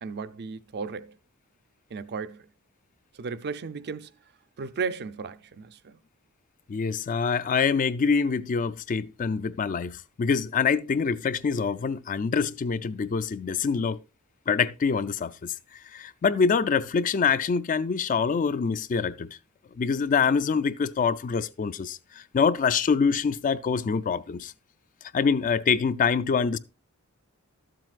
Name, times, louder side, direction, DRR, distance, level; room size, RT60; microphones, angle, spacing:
voice 1, 0.0-1.2 1.9-2.5 3.1-4.1 4.6-6.0, right 5 dB, 50° right, 0.5 m, -35 dB
voice 2, 6.7-14.0 14.5-15.5 15.9-19.3 19.8-24.5 25.1-26.6, left 5 dB, 35° left, 0.4 m, -25 dB
12.5 x 7.6 x 2.4 m
head